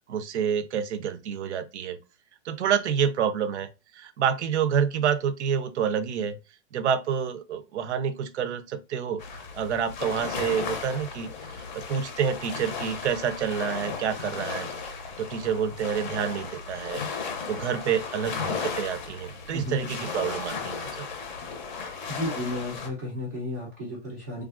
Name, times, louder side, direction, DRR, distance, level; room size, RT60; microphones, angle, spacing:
voice 1, 0.1-2.0 2.4-3.7 3.9-6.4 6.7-9.2 9.5-14.7 15.2-17.0 17.5-21.1, right 7 dB, 65° right, 0.6 m, -28 dB
sound 1, 9.2-22.9, left 5 dB, 40° left, 0.6 m, -35 dB
voice 2, 19.5-19.9 22.1-24.4, left 1 dB, 15° right, 0.4 m, -33 dB
3.4 x 2.4 x 2.4 m
hypercardioid pair, 165°, 36 cm